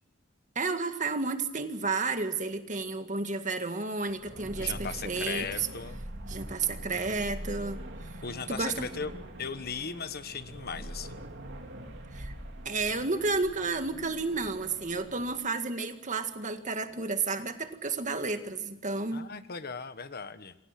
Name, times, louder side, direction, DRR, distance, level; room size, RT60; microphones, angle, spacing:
voice 1, 0.6-5.7 6.3-7.8 8.5-8.9 12.1-12.3 12.7-19.3, right 3 dB, 40° right, 8 dB, 1.9 m, -31 dB
sound 1, 4.1-15.4, right 1 dB, 65° right, 3.5 m, -43 dB
voice 2, 4.6-6.0 8.2-9.1 9.4-11.2 19.1-20.5, left 5 dB, 50° left, 11 dB, 1.3 m, -37 dB
28.0 x 25.0 x 6.0 m, 0.79 s
head